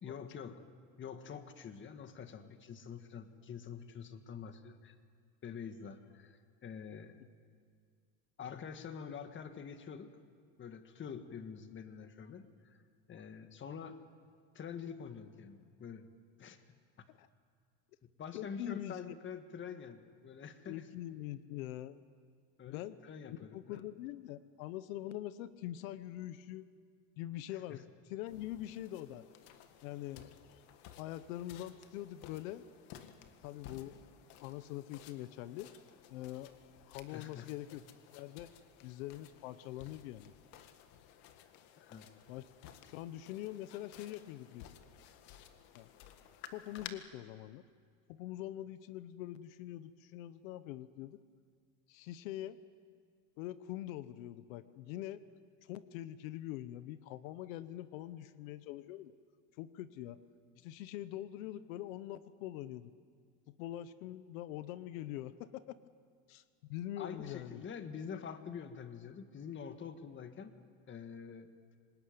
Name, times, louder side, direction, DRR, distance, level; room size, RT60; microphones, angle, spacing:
voice 1, 0.0-0.6 1.0-5.0 5.4-7.2 8.4-10.1 10.6-12.8 13.1-14.0 14.5-16.1 16.4-17.1 18.0-20.9 22.6-23.9 27.5-27.8 37.1-37.5 41.8-42.1 67.0-70.5 70.9-71.5, left 7 dB, 30° left, 9 dB, 1.7 m, -46 dB
voice 2, 18.3-18.9 20.7-22.0 22.7-23.0 23.3-26.7 27.2-29.2 29.8-30.3 31.0-32.6 33.4-34.0 34.4-35.7 36.1-36.5 36.9-37.8 38.1-38.5 38.8-40.3 42.3-42.4 42.9-44.7 45.7-45.9 46.5-47.6 48.1-51.2 51.9-52.6 53.4-55.2 55.6-59.1 59.6-60.2 60.6-62.9 63.5-65.7 66.3-66.4 66.7-67.6, left 13 dB, 90° left, 14 dB, 1.0 m, -44 dB
sound 1, 28.3-46.9, left 10 dB, 70° left, 1.9 m, -56 dB
26.0 x 20.0 x 9.5 m, 2.1 s
supercardioid pair, 130°, 39 cm